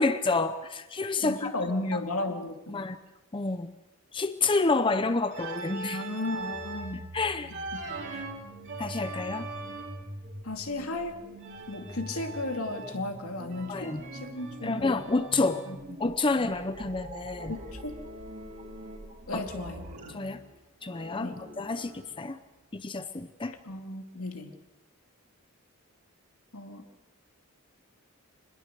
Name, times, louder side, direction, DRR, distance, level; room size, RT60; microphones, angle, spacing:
voice 1, 0.0-2.0 2.7-3.0 3.3-3.7 4.1-6.1 7.1-7.5 8.1-8.2 8.8-9.5 13.7-14.0 14.6-15.7 16.0-17.5 19.3-19.4 20.1-20.4 20.8-22.4 22.7-23.5, left 3 dB, 25° left, 11 dB, 0.7 m, -29 dB
voice 2, 1.2-2.8 5.9-7.1 10.4-11.2 11.7-14.9 15.7-15.8 17.5-18.0 19.3-19.9 21.2-21.4 23.7-24.5 26.5-26.8, left 2 dB, 80° left, 5 dB, 2.5 m, -34 dB
Organ, 5.3-6.9 7.5-10.1 11.4-13.1 13.5-15.8 17.4-19.2 19.5-22.2, right 3 dB, 50° right, 3.6 m, -42 dB
sound 1, 6.4-20.1, right 1 dB, 35° right, 3.3 m, -45 dB
25.5 x 20.5 x 6.7 m, 1.0 s
head